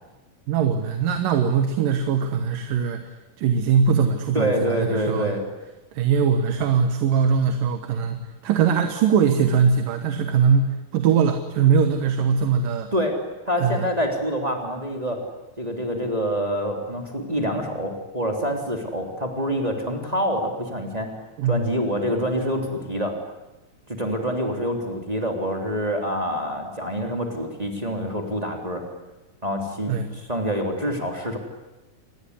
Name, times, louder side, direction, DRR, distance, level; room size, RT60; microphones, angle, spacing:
voice 1, 0.5-5.3 5.9-12.9 13.6-13.9 21.4-21.6 29.9-30.1, right 6 dB, 85° right, 7 dB, 3.1 m, -21 dB
voice 2, 4.3-5.5 12.9-13.1 13.5-15.2 15.6-21.1 21.5-23.1 23.9-28.8 29.4-31.4, equal, 10° right, 2 dB, 3.4 m, -26 dB
28.0 x 20.5 x 9.9 m, 1.1 s
omnidirectional pair, 3.8 m